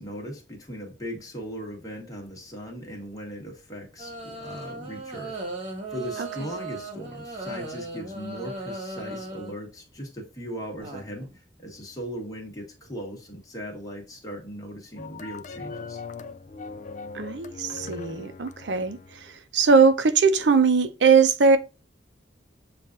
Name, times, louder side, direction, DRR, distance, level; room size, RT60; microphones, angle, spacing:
voice 1, 0.0-5.3 5.9-11.3 11.6-16.0, equal, 20° left, 1.5 m, -38 dB
sound 1, 4.0-9.6 10.8-11.4, right 2 dB, 30° right, 1.4 m, -37 dB
sound 2, 15.0-19.3, left 4 dB, 45° left, 0.4 m, -40 dB
voice 2, 17.1-21.6, right 5 dB, 75° right, 0.6 m, -20 dB
7.2 x 2.6 x 2.5 m
head